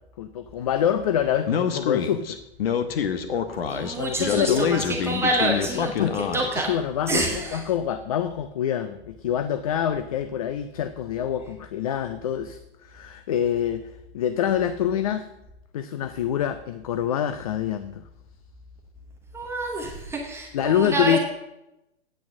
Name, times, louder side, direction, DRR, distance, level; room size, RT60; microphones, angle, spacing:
voice 1, 0.2-2.4 4.0-4.8 5.7-6.3 6.7-15.3 15.7-18.0 20.5-21.2, left 9 dB, 35° left, 11 dB, 0.4 m, -26 dB
Speech, 1.5-6.7, left 7 dB, 60° left, 1.2 m, -26 dB
voice 2, 3.7-6.7 7.1-7.6 19.3-21.2, right 2 dB, 10° right, 0 dB, 0.9 m, -27 dB
8.8 x 6.0 x 7.2 m, 0.90 s
hypercardioid pair, 145°, 33 cm